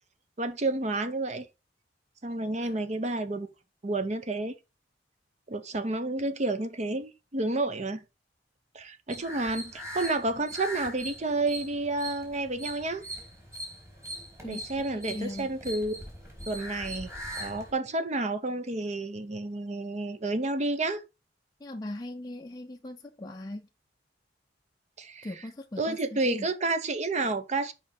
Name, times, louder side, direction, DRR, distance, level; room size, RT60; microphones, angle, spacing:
voice 1, 0.4-1.5 2.2-3.5 3.8-4.5 5.5-8.0 8.7-13.0 14.4-16.0 16.5-21.0 25.0-25.3 25.8-27.7, right 2 dB, 40° right, 0.7 m, -30 dB
sound 1, 9.1-17.7, equal, 15° right, 2.8 m, -41 dB
voice 2, 15.1-15.5 21.6-23.7 25.2-26.5, left 1 dB, 20° left, 0.5 m, -39 dB
5.1 x 5.0 x 5.2 m
head